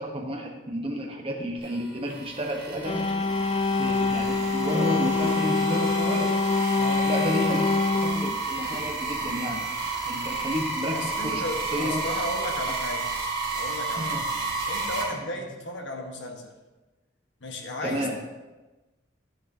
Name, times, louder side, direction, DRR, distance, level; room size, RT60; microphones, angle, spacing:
voice 1, 0.0-3.1 3.8-6.4 7.1-9.7 10.0-12.0 14.0-14.2 17.8-18.2, equal, 30° right, 1 dB, 1.1 m, -31 dB
sound 1, 1.6-15.0, right 3 dB, 60° right, 2.9 m, -32 dB
sound 2, 2.8-9.6, left 3 dB, 30° left, 0.4 m, -25 dB
voice 2, 6.8-7.1 10.9-13.1 13.5-14.3 14.7-16.5 17.4-18.2, left 1 dB, 65° left, 2 dB, 1.3 m, -35 dB
11.5 x 9.4 x 2.8 m, 1.1 s
head